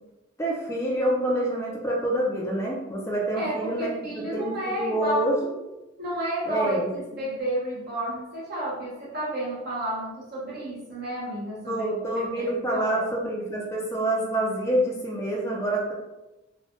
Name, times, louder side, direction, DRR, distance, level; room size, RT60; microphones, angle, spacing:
voice 1, 0.4-5.4 6.4-6.9 11.7-15.9, right 1 dB, 15° left, -3 dB, 0.5 m, -27 dB
voice 2, 3.3-5.3 6.0-11.9 12.2-13.0, right 1 dB, 55° right, -7 dB, 1.0 m, -31 dB
3.1 x 2.2 x 2.8 m, 1.0 s
head